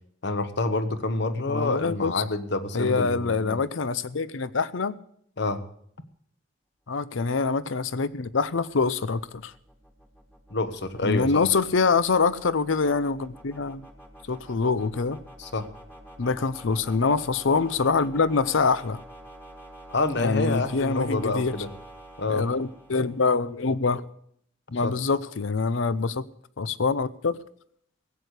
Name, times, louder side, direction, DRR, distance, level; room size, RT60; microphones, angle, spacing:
voice 1, 0.2-3.6 5.4-5.6 10.5-11.4 15.4-15.6 19.9-21.7 22.2-22.5 24.8-24.9, left 2 dB, 60° left, 11 dB, 1.1 m, -27 dB
voice 2, 1.5-2.1 2.7-4.9 6.9-9.5 11.0-13.8 14.3-15.2 16.2-19.0 20.2-21.5 22.3-24.1 24.7-26.2 26.6-27.3, left 4 dB, 80° left, 17 dB, 0.7 m, -25 dB
sound 1, 8.1-23.6, right 1 dB, 10° left, 1.6 m, -48 dB
16.5 x 8.3 x 8.1 m, 0.67 s
head